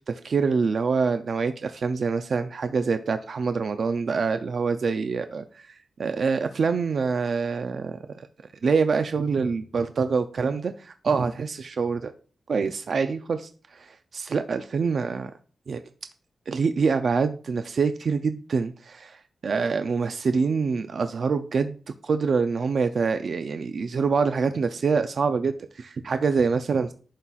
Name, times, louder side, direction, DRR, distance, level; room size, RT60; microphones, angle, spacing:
voice 1, 0.1-5.7 6.0-8.0 8.6-12.1 12.5-15.3 15.7-15.8 16.5-21.8 22.0-26.9, right 5 dB, 50° right, 8 dB, 0.4 m, -25 dB
11.0 x 4.1 x 2.3 m, 0.39 s
wide cardioid pair, 175°, 0 cm